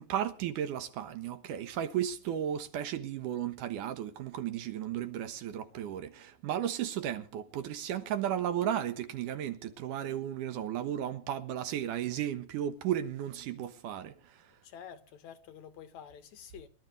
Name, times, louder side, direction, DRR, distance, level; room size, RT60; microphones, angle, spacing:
voice 1, 0.0-14.5, right 10 dB, 85° right, 2.8 m, -34 dB
voice 2, 14.6-16.7, left 8 dB, 70° left, 2.4 m, -49 dB
23.5 x 12.0 x 3.3 m
omnidirectional pair, 3.6 m